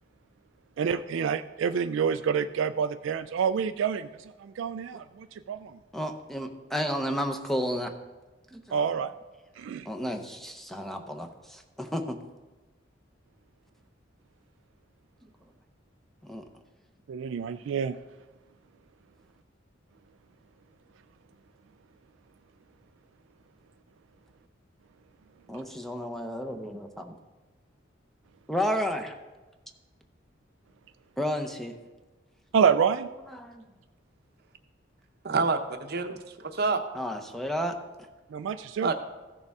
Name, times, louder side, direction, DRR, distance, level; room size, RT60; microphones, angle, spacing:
voice 1, 0.8-5.7 8.7-9.1 9.6-9.9 17.1-18.0 32.5-33.1 38.3-38.9, right 7 dB, 70° right, 10 dB, 0.3 m, -27 dB
voice 2, 5.9-7.9 8.5-8.8 9.9-12.2 15.2-15.3 16.2-16.5 25.5-27.2 28.5-29.2 31.2-31.8 33.3-33.6 36.9-37.8, equal, ahead, 5 dB, 0.6 m, -32 dB
voice 3, 35.2-36.8 38.8-38.9, right 4 dB, 55° right, 7 dB, 0.8 m, -27 dB
15.0 x 6.6 x 3.5 m, 1.2 s
head